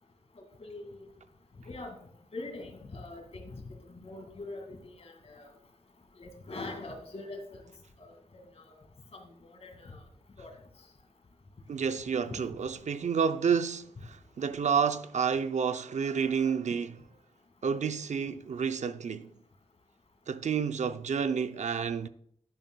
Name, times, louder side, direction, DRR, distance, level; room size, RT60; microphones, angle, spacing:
voice 1, 0.4-1.1 1.7-2.0 2.3-5.5 6.2-7.6 8.0-8.2 8.5-8.7 9.1-10.0 10.4-10.6 12.3-12.4, left 2 dB, 60° left, 2.1 m, -43 dB
voice 2, 11.7-17.0 17.6-19.3 20.3-22.1, right 6 dB, 80° right, 0.5 m, -30 dB
11.5 x 10.5 x 2.3 m
wide cardioid pair, 115°, 12 cm